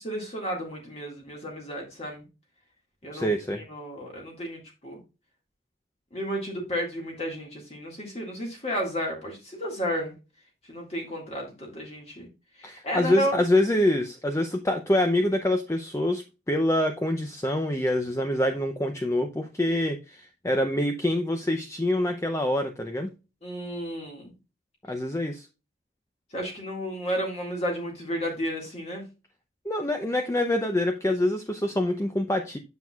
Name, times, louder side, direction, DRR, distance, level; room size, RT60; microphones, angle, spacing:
voice 1, 0.0-2.3 3.0-3.3 3.6-5.0 6.1-10.1 10.6-12.3 12.5-13.4 23.4-24.3 26.3-29.1, equal, 35° left, 0 dB, 1.9 m, -32 dB
voice 2, 3.1-3.6 12.6-23.1 24.9-25.5 29.6-32.6, left 1 dB, 15° left, 6 dB, 0.5 m, -25 dB
9.4 x 6.0 x 2.3 m, 0.29 s
head